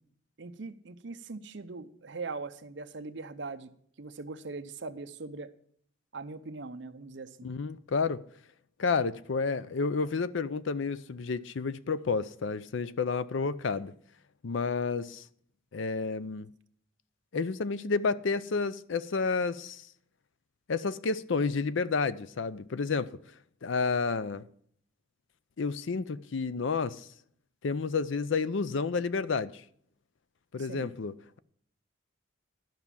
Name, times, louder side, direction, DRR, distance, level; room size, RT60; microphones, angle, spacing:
voice 1, 0.4-3.7 4.0-5.5 6.1-7.5 30.6-30.9, right 3 dB, 65° right, 0.7 m, -41 dB
voice 2, 7.4-8.2 8.8-13.9 14.4-15.2 15.7-16.5 17.3-19.8 20.7-23.1 23.6-24.4 25.6-27.1 27.6-29.6 30.5-31.4, left 4 dB, 70° left, 0.5 m, -30 dB
12.0 x 6.0 x 7.1 m
head